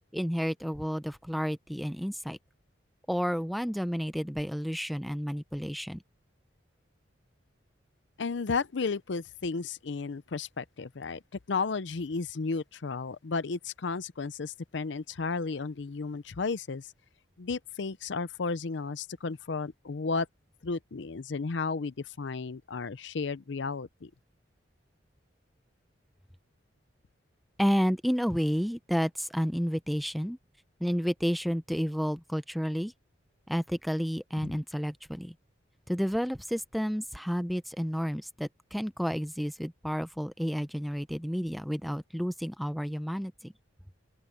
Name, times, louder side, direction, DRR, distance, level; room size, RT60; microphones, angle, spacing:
voice 1, 0.1-2.4 3.1-6.0 27.6-30.4 30.8-32.9 33.5-35.3 35.9-43.5, equal, ahead, 0.7 m, -31 dB
voice 2, 8.2-11.2 11.5-16.9 17.4-20.3 20.6-24.1 34.4-34.5, left 4 dB, 70° left, 0.6 m, -33 dB
open air
head